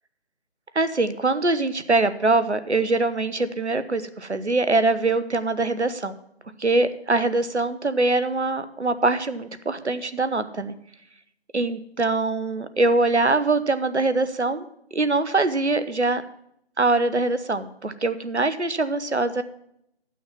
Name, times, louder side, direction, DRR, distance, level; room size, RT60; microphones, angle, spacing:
voice 1, 0.7-6.2 6.6-10.7 11.5-14.6 14.9-16.2 16.8-19.4, right 3 dB, 90° right, 12 dB, 0.9 m, -23 dB
9.6 x 6.3 x 5.9 m, 0.75 s
figure-of-eight pair, 155°, 33 cm